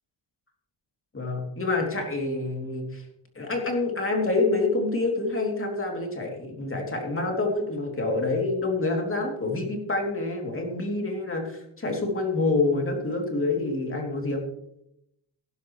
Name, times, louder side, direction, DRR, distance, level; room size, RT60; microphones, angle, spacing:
voice 1, 1.1-3.0 3.3-14.4, left 3 dB, 25° left, 1 dB, 2.9 m, -27 dB
17.0 x 11.5 x 3.2 m, 0.79 s
wide cardioid pair, 130°, 46 cm